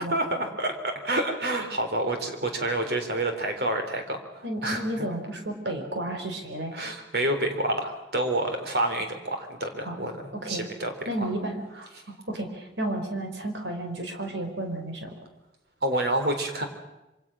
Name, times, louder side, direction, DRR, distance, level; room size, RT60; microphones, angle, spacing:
voice 1, 0.1-5.1 6.7-10.2 10.5-10.9 15.8-16.7, right 1 dB, 60° right, 5 dB, 3.7 m, -28 dB
voice 2, 4.4-6.7 9.8-10.1 10.3-10.6 11.1-15.1, right 1 dB, 80° right, 4 dB, 4.7 m, -32 dB
26.5 x 25.5 x 6.3 m, 0.99 s
head